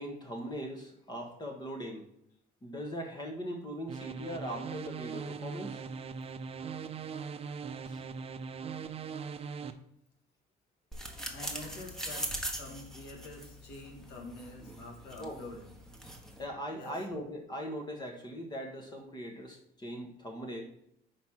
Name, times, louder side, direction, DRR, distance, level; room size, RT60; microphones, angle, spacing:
voice 1, 0.0-2.0 2.6-5.8 7.8-8.0 15.2-15.4 16.4-20.6, equal, 25° left, 1 dB, 1.2 m, -40 dB
sound 1, 3.9-9.7, right 6 dB, 35° right, 0.5 m, -40 dB
sound 2, 10.9-16.4, right 1 dB, 5° left, 1.2 m, -41 dB
voice 2, 11.3-15.7 16.8-17.0, left 2 dB, 85° left, 0 dB, 1.9 m, -47 dB
5.2 x 4.3 x 6.1 m, 0.74 s
cardioid pair, 110°, 17 cm